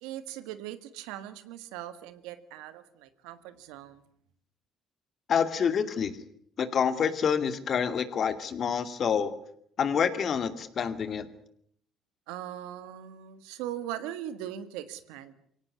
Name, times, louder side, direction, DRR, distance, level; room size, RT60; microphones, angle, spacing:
voice 1, 0.0-4.0 12.3-15.3, right 11 dB, 90° right, 12 dB, 1.7 m, -40 dB
voice 2, 5.3-6.1 6.6-9.3 9.8-11.3, left 7 dB, 55° left, 10 dB, 2.5 m, -27 dB
23.5 x 17.5 x 9.7 m, 0.68 s
supercardioid pair, 75°, 0 cm